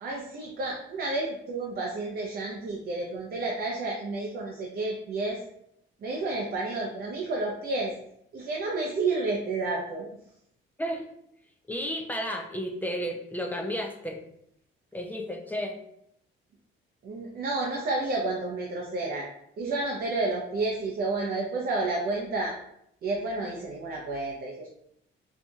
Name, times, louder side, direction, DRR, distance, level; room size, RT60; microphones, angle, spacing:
voice 1, 0.0-5.4 6.0-7.9 8.3-10.1 17.0-19.3 19.6-22.5 23.0-24.7, right 2 dB, 50° right, -2 dB, 0.6 m, -30 dB
voice 2, 11.7-14.2 14.9-15.8, equal, 10° left, 2 dB, 0.4 m, -32 dB
4.3 x 2.7 x 2.3 m, 0.75 s
cardioid pair, 140°, 21 cm